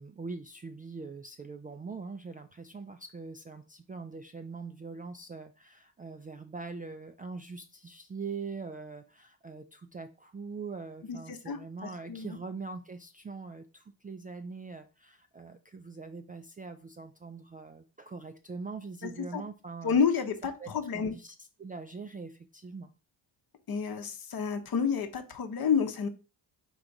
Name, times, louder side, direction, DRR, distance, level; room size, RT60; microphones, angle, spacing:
voice 1, 0.0-20.0 20.4-22.9, right 4 dB, 20° right, 0.3 m, -42 dB
voice 2, 11.1-12.4 19.0-19.4 19.8-21.1 23.7-26.1, left 6 dB, 50° left, 0.9 m, -30 dB
3.8 x 2.6 x 4.5 m
supercardioid pair, 55°, 48 cm